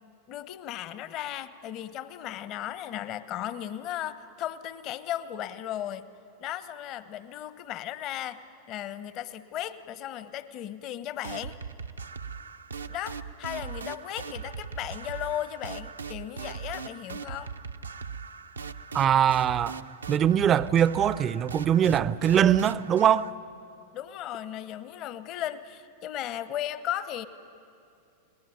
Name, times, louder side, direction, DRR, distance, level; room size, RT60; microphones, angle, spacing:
voice 1, 0.3-6.1 6.4-8.4 8.7-11.6 12.9-17.5 23.9-27.3, left 11 dB, 40° left, 1.0 m, -36 dB
sound 1, 11.2-23.3, right 5 dB, 75° right, 0.7 m, -39 dB
voice 2, 18.9-23.3, right 9 dB, 25° right, 0.6 m, -22 dB
29.5 x 19.5 x 9.3 m
figure-of-eight pair, 90°, 0 cm